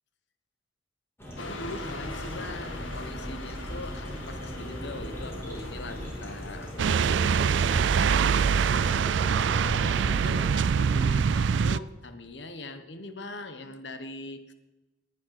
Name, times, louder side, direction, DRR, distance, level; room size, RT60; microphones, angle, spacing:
sound 1, 1.2-10.5, equal, 15° left, 3.5 m, -38 dB
sound 2, 1.4-7.4, left 2 dB, 90° left, 1.7 m, -42 dB
voice 1, 1.5-14.5, left 2 dB, 65° left, 10 dB, 1.3 m, -42 dB
sound 3, 6.8-11.8, right 6 dB, 70° right, 0.4 m, -24 dB
18.5 x 9.6 x 5.9 m, 1.0 s
head